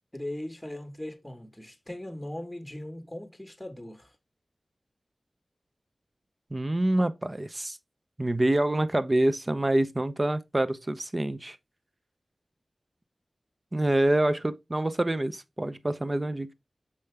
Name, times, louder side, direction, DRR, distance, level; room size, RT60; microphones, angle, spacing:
voice 1, 0.1-4.1, left 1 dB, 10° left, 1.4 m, -39 dB
voice 2, 6.5-7.8 8.2-11.6 13.7-16.5, right 1 dB, 30° right, 0.7 m, -26 dB
6.9 x 5.1 x 3.3 m
wide cardioid pair, 70°, 0 cm